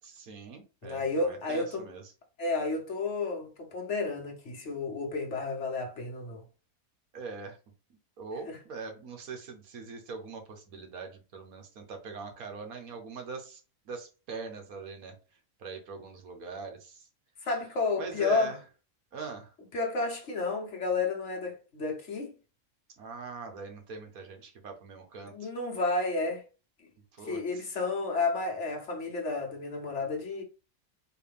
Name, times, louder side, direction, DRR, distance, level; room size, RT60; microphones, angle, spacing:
voice 1, 0.0-2.0 7.1-7.6 8.2-15.2 15.6-17.1 18.0-18.6 19.1-19.5 23.0-25.5 27.1-27.7, right 4 dB, 70° right, 1.4 m, -42 dB
voice 2, 0.8-1.8 2.4-6.4 8.5-8.6 17.4-18.5 19.7-22.3 25.3-26.4 27.3-30.4, left 3 dB, 55° left, 1.2 m, -31 dB
4.6 x 2.6 x 3.4 m
omnidirectional pair, 1.6 m